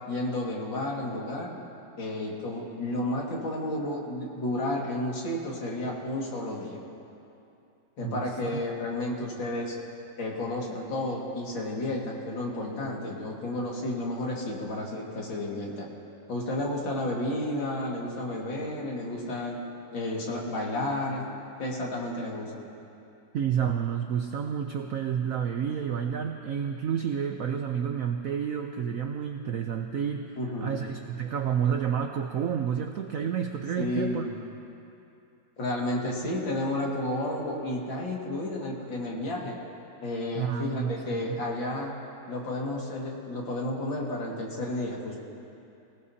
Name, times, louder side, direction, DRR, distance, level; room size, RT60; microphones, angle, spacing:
voice 1, 0.1-1.5 2.0-6.8 8.0-9.8 10.2-15.9 16.3-19.6 19.9-21.2 21.6-22.6 30.4-30.8 33.8-34.3 35.6-39.6 40.0-41.9 42.3-45.2, left 1 dB, 70° left, -2 dB, 2.8 m, -32 dB
voice 2, 8.0-8.6 23.3-34.3 40.4-41.4, right 8 dB, 75° right, 5 dB, 0.8 m, -30 dB
25.0 x 17.0 x 2.8 m, 2.7 s
omnidirectional pair, 2.1 m